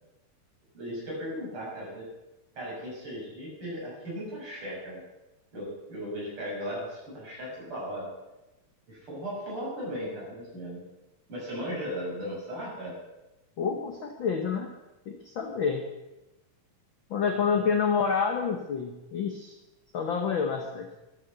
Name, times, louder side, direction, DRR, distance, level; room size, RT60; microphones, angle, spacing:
voice 1, 0.7-2.1 2.5-5.0 5.5-8.1 8.9-10.8 11.3-13.0 17.4-17.6, equal, 40° right, -5 dB, 7.8 m, -37 dB
voice 2, 13.6-14.7 15.1-15.9 17.1-19.5 19.9-20.9, left 6 dB, 60° left, 4 dB, 1.3 m, -28 dB
13.0 x 12.0 x 6.7 m, 1.0 s
omnidirectional pair, 3.6 m